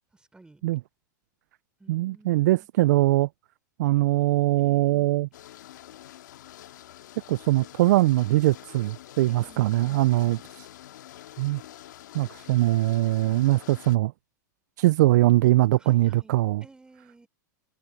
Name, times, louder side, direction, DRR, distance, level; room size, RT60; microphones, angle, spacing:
voice 1, 0.1-0.6 1.8-2.7 4.6-5.1 9.3-10.0 12.8-13.1 15.8-17.3, right 2 dB, 10° right, 4.7 m, -54 dB
voice 2, 1.9-3.3 3.8-5.3 7.3-10.7 11.4-11.6 12.1-14.1 14.8-16.6, right 17 dB, 65° right, 0.4 m, -22 dB
sound 1, 5.3-14.0, left 13 dB, 70° left, 1.9 m, -47 dB
hypercardioid pair, 105°, 10 cm